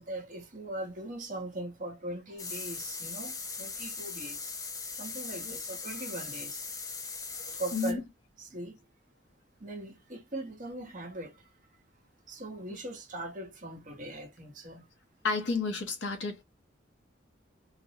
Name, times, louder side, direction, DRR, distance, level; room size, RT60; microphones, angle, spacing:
voice 1, 0.0-4.5 4.9-6.6 7.6-8.0 8.4-8.8 9.6-11.5 12.3-14.8, right 1 dB, 40° right, 0.8 m, -40 dB
sound 1, 2.4-7.9, left 4 dB, 20° left, 0.4 m, -39 dB
voice 2, 7.4-8.0 15.2-16.4, left 4 dB, 65° left, 0.7 m, -32 dB
2.4 x 2.0 x 2.7 m
head